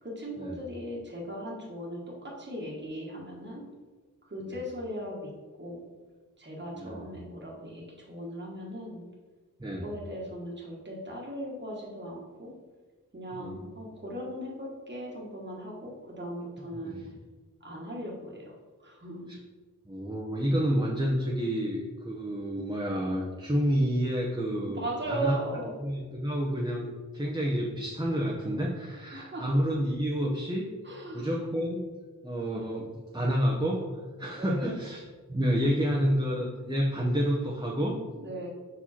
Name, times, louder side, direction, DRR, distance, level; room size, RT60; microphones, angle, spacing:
voice 1, 0.0-3.6 4.3-5.3 5.6-5.8 6.4-9.0 9.8-12.5 13.1-17.0 17.6-18.5 18.8-19.3 24.6-25.7 29.1-29.5 30.8-31.3 34.3-34.8 38.2-38.5, right 1 dB, 35° right, -4 dB, 1.5 m, -38 dB
voice 2, 13.4-13.7 16.8-17.0 19.3-19.4 19.9-25.4 25.8-26.9 27.1-30.7 31.1-31.8 32.2-33.8 34.2-35.0 35.3-38.0, equal, 15° right, -2 dB, 0.9 m, -29 dB
5.5 x 4.8 x 4.3 m, 1.3 s
wide cardioid pair, 65°, 32 cm